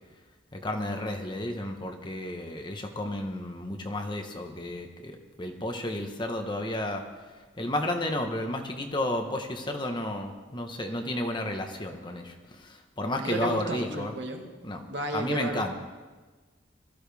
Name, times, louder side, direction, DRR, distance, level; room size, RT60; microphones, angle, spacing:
voice 1, 0.5-7.0 7.6-14.1 14.6-14.8 15.1-15.7, left 1 dB, 25° left, 4 dB, 1.1 m, -32 dB
voice 2, 13.2-14.5 14.9-15.7, right 2 dB, 70° right, 2 dB, 1.9 m, -33 dB
20.5 x 14.0 x 3.5 m, 1.3 s
head